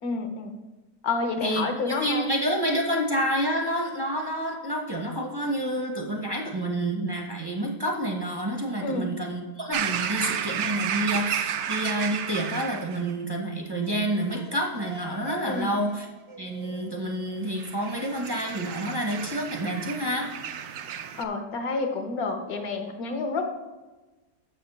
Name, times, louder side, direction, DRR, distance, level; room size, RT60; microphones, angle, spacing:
voice 1, 0.0-0.5 1.0-2.3 8.8-9.1 15.5-15.8 21.2-23.5, left 3 dB, 70° left, 5 dB, 1.4 m, -29 dB
voice 2, 1.4-16.1 16.4-20.3, right 1 dB, 25° right, 1 dB, 0.6 m, -28 dB
sound 1, 9.7-13.1 17.6-21.2, right 9 dB, 75° right, 1.0 m, -32 dB
sound 2, 13.8-18.3, right 5 dB, 50° right, 0.9 m, -46 dB
6.6 x 5.0 x 6.7 m, 1.1 s
omnidirectional pair, 1.7 m